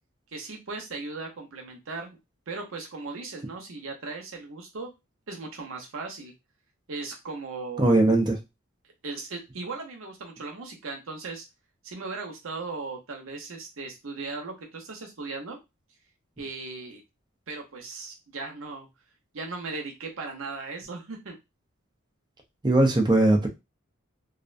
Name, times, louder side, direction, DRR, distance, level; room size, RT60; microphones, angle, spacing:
voice 1, 0.3-2.1 2.5-4.9 5.3-6.3 6.9-8.0 9.0-11.4 11.8-15.6 16.4-17.0 17.5-18.9 19.3-21.4, right 3 dB, 70° right, 0.7 m, -37 dB
voice 2, 7.8-8.4 22.6-23.5, right 2 dB, 20° right, 0.5 m, -20 dB
2.5 x 2.1 x 2.4 m
head